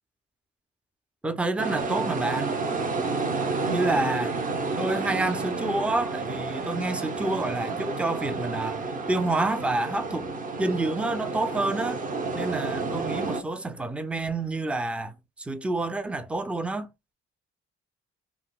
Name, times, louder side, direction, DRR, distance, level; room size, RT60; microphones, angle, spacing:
voice 1, 1.2-2.6 3.7-4.4 4.8-10.3 10.6-12.0 12.3-16.9, right 2 dB, 5° right, 0.4 m, -28 dB
sound 1, 1.6-13.4, right 3 dB, 25° right, 0.7 m, -30 dB
3.6 x 2.1 x 2.3 m
cardioid pair, 90°, 30 cm